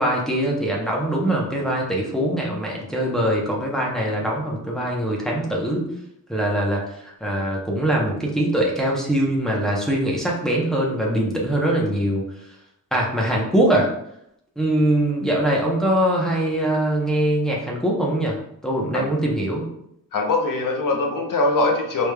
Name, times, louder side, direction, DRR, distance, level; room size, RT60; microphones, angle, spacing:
voice 1, 0.0-5.9 6.3-12.2 12.9-13.9 14.6-19.7, right 1 dB, ahead, -3 dB, 0.8 m, -22 dB
voice 2, 20.1-22.1, left 2 dB, 70° left, 3 dB, 0.7 m, -22 dB
4.8 x 3.4 x 2.2 m, 0.76 s
wide cardioid pair, 165°, 33 cm